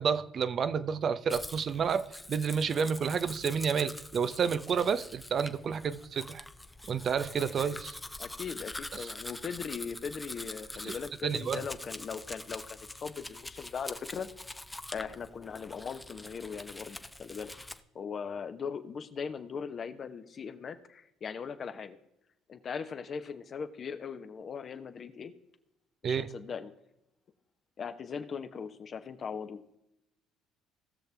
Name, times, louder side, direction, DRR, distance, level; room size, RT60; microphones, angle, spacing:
voice 1, 0.0-6.4 6.9-8.0 8.9-9.1 10.8-11.0 11.2-11.6 26.0-26.3, right 6 dB, 50° right, 0.7 m, -30 dB
Domestic sounds home sounds, 1.3-17.8, left 1 dB, 10° left, 0.8 m, -45 dB
voice 2, 8.2-14.3 14.9-17.5 17.9-22.0 22.5-25.3 26.0-26.7 27.8-29.6, left 6 dB, 45° left, 1.1 m, -39 dB
18.5 x 6.6 x 3.5 m
supercardioid pair, 80°, 0 cm